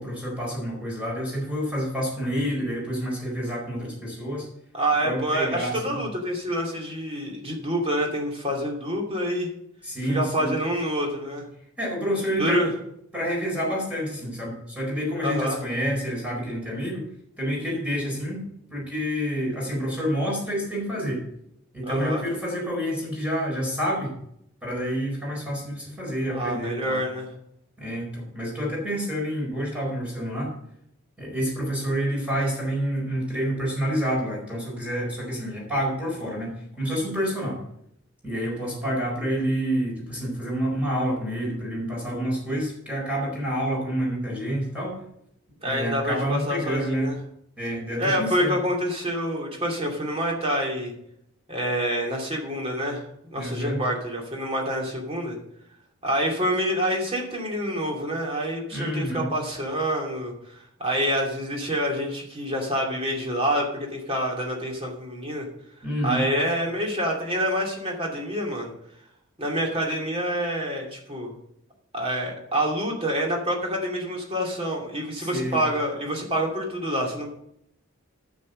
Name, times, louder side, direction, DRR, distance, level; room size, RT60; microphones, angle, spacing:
voice 1, 0.0-4.5 5.0-6.0 9.8-10.5 11.8-12.7 13.1-17.0 17.4-18.4 18.7-21.2 21.7-24.1 24.6-27.0 27.8-30.5 31.2-37.6 38.2-45.0 45.6-47.1 47.6-48.6 53.3-53.8 58.7-59.3 65.8-66.2 75.2-75.6, equal, 5° right, -3 dB, 4.5 m, -28 dB
voice 2, 4.7-9.5 10.1-11.4 12.4-12.7 15.2-15.6 21.9-22.2 26.3-27.3 45.6-47.2 48.0-50.9 51.5-55.4 56.0-65.4 66.0-68.7 69.4-71.3 71.9-77.3, equal, 30° right, -1 dB, 2.7 m, -27 dB
9.6 x 7.3 x 6.6 m, 0.74 s
head